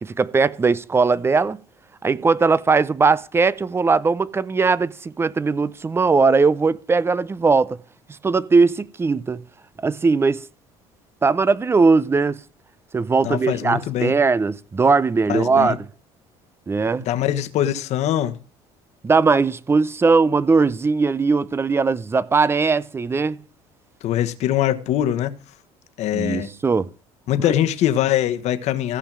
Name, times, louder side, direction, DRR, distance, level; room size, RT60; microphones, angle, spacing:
voice 1, 0.0-1.6 2.0-7.8 8.2-9.4 9.8-10.4 11.2-12.4 12.9-15.9 16.7-17.1 19.0-23.4 26.1-26.9, right 4 dB, 20° right, 0.6 m, -19 dB
voice 2, 13.2-14.1 15.3-15.8 17.0-18.3 24.0-25.3 26.0-26.5 27.3-29.0, left 11 dB, 65° left, 1.3 m, -22 dB
15.0 x 5.5 x 7.5 m
cardioid pair, 105°, 13 cm